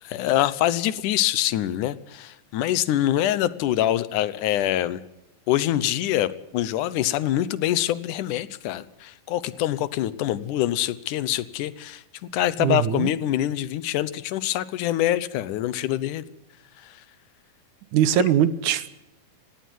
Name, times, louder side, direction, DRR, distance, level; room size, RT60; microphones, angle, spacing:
voice 1, 0.0-5.0 5.5-12.0 12.3-16.2 16.8-16.9 18.2-18.3, left 13 dB, 80° left, 16 dB, 2.3 m, -25 dB
voice 2, 12.6-13.1 17.9-18.9, right 10 dB, 75° right, 14 dB, 2.3 m, -21 dB
18.5 x 16.0 x 9.4 m, 0.93 s
omnidirectional pair, 3.7 m